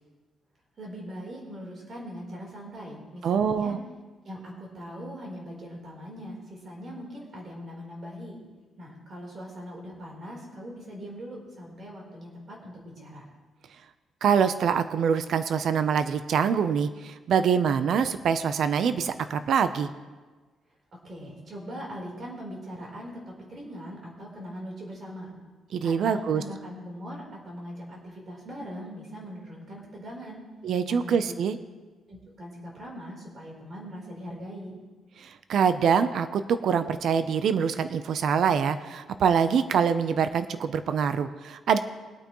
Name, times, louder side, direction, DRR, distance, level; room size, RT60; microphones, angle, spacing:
voice 1, 0.8-3.7 4.2-8.4 8.8-13.2 20.9-25.3 25.8-30.4 30.8-31.2 32.1-34.7, equal, 35° right, -2 dB, 3.7 m, -41 dB
voice 2, 3.2-3.8 14.2-19.9 25.7-26.4 30.6-31.6 35.2-41.8, right 7 dB, 55° right, 10 dB, 0.6 m, -25 dB
22.0 x 8.9 x 3.1 m, 1.3 s
cardioid pair, 165°, 0 cm